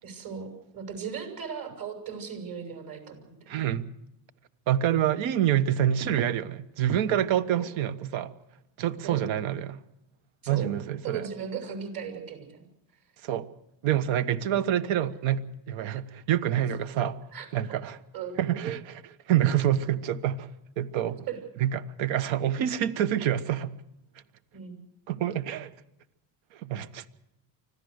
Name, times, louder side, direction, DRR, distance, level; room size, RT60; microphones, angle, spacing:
voice 1, 0.0-3.3 7.5-7.7 9.0-9.2 10.4-10.7 11.0-12.6 14.5-15.0 17.3-17.8 18.1-18.4 21.3-21.4 24.5-24.8, right 7 dB, 50° right, 6.7 m, -37 dB
voice 2, 3.5-3.9 4.7-8.3 8.8-9.8 10.5-11.2 13.2-13.5 13.8-17.2 17.5-18.0 18.4-20.5 20.8-21.2 21.6-23.8 25.1-25.7 26.6-27.0, right 10 dB, 75° right, 1.4 m, -27 dB
25.0 x 16.5 x 6.6 m
cardioid pair, 105°, 46 cm